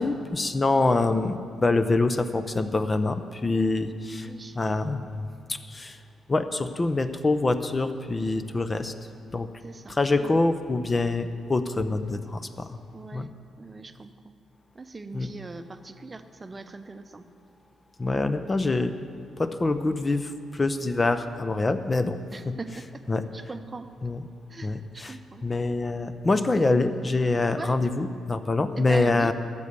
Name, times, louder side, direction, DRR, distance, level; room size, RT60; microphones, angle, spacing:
voice 1, 0.0-4.3 4.6-6.0 6.3-8.9 9.3-9.5 9.9-12.8 13.1-13.3 15.1-15.3 18.0-18.9 19.4-22.2 22.5-22.6 23.1-23.2 24.0-24.2 24.6-25.2 25.4-29.3, left 2 dB, 30° left, 11 dB, 0.7 m, -25 dB
voice 2, 4.2-4.6 9.6-10.4 12.9-13.3 13.6-14.3 14.7-17.3 18.1-18.3 22.3-23.0 23.3-23.9 24.5-25.4 27.5-27.7 28.8-29.3, right 3 dB, 30° right, 9 dB, 0.7 m, -40 dB
13.0 x 6.9 x 8.1 m, 2.3 s
figure-of-eight pair, 40°, 0 cm